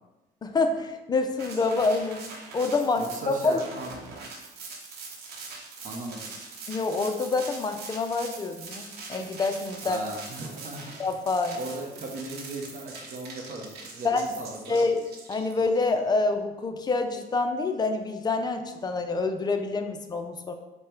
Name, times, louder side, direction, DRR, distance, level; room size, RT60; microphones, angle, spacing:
voice 1, 0.4-2.2 2.5-3.6 6.7-10.0 11.0-11.6 14.0-14.3 14.7-15.0 15.3-20.5, left 3 dB, 25° left, 6 dB, 0.5 m, -27 dB
sound 1, 1.4-15.8, right 4 dB, 75° right, 0.9 m, -42 dB
voice 2, 3.0-3.9 5.8-6.3 9.8-10.9 11.5-14.8, right 2 dB, 50° right, 1 dB, 0.8 m, -37 dB
5.2 x 2.2 x 4.4 m, 1.1 s
cardioid pair, 110°, 17 cm